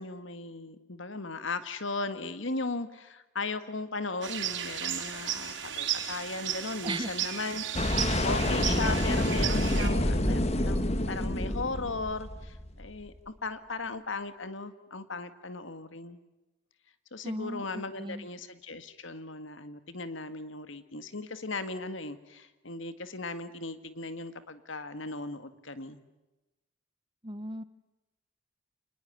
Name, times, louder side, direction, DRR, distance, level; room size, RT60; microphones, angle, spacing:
voice 1, 0.0-16.2 17.1-26.0, left 3 dB, 75° left, 11 dB, 1.9 m, -37 dB
sound 1, 4.2-9.9, right 9 dB, 65° right, 4.3 m, -34 dB
voice 2, 6.8-7.1 8.0-8.9 17.2-18.3 27.2-27.6, right 1 dB, 25° right, 14 dB, 1.2 m, -37 dB
sound 2, 7.7-12.9, left 1 dB, 30° left, 1.7 m, -28 dB
29.0 x 20.0 x 9.2 m, 1.0 s
head